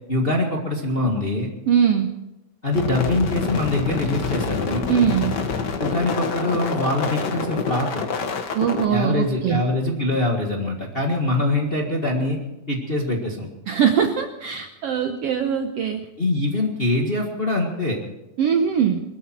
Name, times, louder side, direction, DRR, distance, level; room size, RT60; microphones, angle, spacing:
voice 1, 0.1-1.5 2.6-4.9 5.8-8.0 8.9-12.4 12.7-13.5 16.2-18.0, left 2 dB, 25° left, 0 dB, 1.4 m, -23 dB
voice 2, 1.7-2.1 4.9-5.3 8.5-9.6 13.7-16.1 18.4-19.0, right 8 dB, 70° right, 6 dB, 1.5 m, -21 dB
sound 1, 2.7-8.9, left 5 dB, 55° left, 1.2 m, -27 dB
21.0 x 13.5 x 4.6 m, 0.96 s
omnidirectional pair, 3.6 m